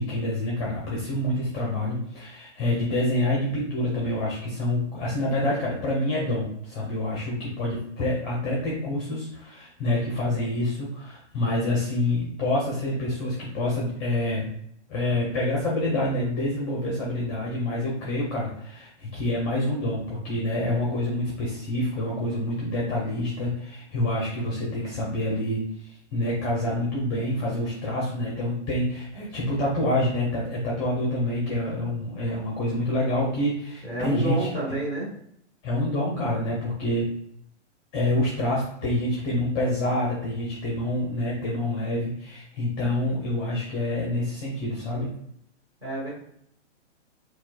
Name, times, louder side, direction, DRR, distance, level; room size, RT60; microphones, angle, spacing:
voice 1, 0.0-14.5 14.9-34.5 35.6-37.1 37.9-45.1, left 1 dB, 25° left, -4 dB, 0.8 m, -27 dB
voice 2, 33.8-35.1 45.8-46.1, right 2 dB, 10° right, -7 dB, 1.4 m, -29 dB
4.2 x 2.4 x 2.4 m, 0.70 s
hypercardioid pair, 155°, 36 cm